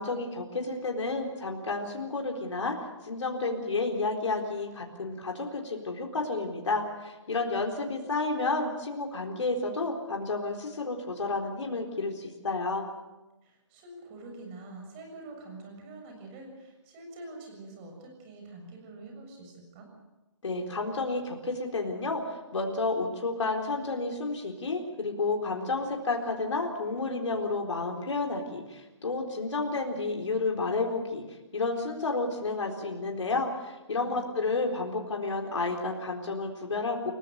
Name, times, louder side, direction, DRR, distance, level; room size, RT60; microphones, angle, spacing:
voice 1, 0.0-2.8 3.0-12.8 20.4-37.1, left 3 dB, 75° left, 2 dB, 4.0 m, -31 dB
voice 2, 13.4-19.9 34.0-34.5, right 2 dB, 25° right, 2 dB, 7.0 m, -46 dB
29.0 x 16.0 x 6.7 m, 1.1 s
hypercardioid pair, 150°, 16 cm